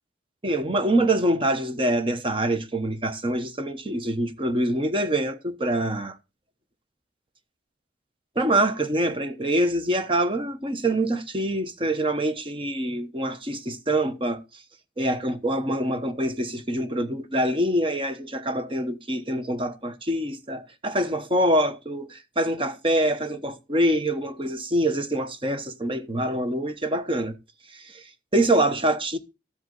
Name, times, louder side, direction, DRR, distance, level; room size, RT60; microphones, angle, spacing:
voice 1, 0.4-6.2 8.3-14.6 15.0-27.3 27.7-29.2, right 1 dB, 30° right, 1.1 m, -25 dB
13.5 x 7.9 x 3.9 m
head